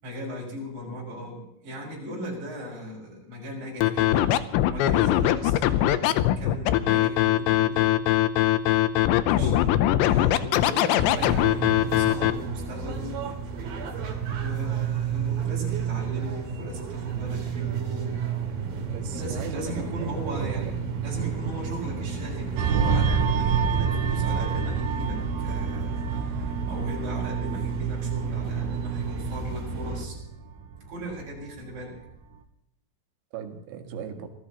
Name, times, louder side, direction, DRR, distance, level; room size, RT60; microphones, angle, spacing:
voice 1, 0.0-4.3 4.7-7.9 9.2-9.7 10.1-13.1 14.4-18.2 19.1-30.2 30.9-32.0, equal, 35° right, -4 dB, 7.3 m, -37 dB
Scratching (performance technique), 3.8-12.3, left 13 dB, 80° left, 2.7 m, -21 dB
sound 1, 11.1-30.0, right 7 dB, 55° right, 3.8 m, -31 dB
voice 2, 18.9-20.7 33.3-34.3, right 8 dB, 90° right, 5 dB, 4.5 m, -37 dB
sound 2, 22.6-31.6 32.0-32.2, right 5 dB, 70° right, 3.4 m, -29 dB
26.5 x 18.0 x 3.1 m, 0.80 s
omnidirectional pair, 5.8 m